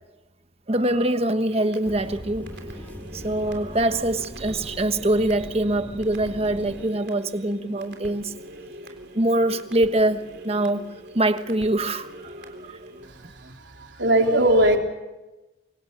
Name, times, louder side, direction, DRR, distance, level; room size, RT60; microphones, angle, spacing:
voice 1, 0.7-2.5 3.1-8.3 9.1-10.8 11.1-12.8, right 1 dB, 35° right, 1.3 m, -24 dB
sound 1, 1.5-13.1, equal, 65° right, 3.6 m, -43 dB
sound 2, 1.8-6.9, equal, 10° left, 1.8 m, -40 dB
voice 2, 13.0-14.8, right 1 dB, 85° right, 3.5 m, -21 dB
28.0 x 24.0 x 6.7 m
head